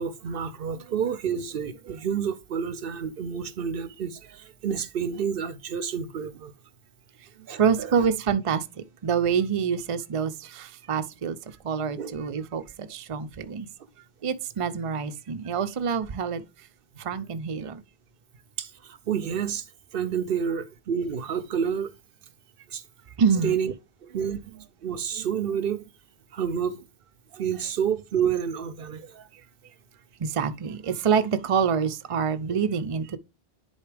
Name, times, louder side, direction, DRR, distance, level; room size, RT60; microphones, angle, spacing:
voice 1, 0.0-6.5 7.4-7.9 12.0-12.1 13.4-13.6 18.6-19.7 19.9-21.9 22.7-22.8 23.3-23.7 24.0-25.9 26.3-26.9 27.3-29.3, right 7 dB, 65° right, 0.8 m, -29 dB
voice 2, 7.6-11.4 11.6-13.7 14.2-16.4 17.0-17.8 23.2-23.5 30.2-33.2, right 6 dB, 40° right, 0.6 m, -26 dB
10.5 x 4.2 x 3.3 m
omnidirectional pair, 1.1 m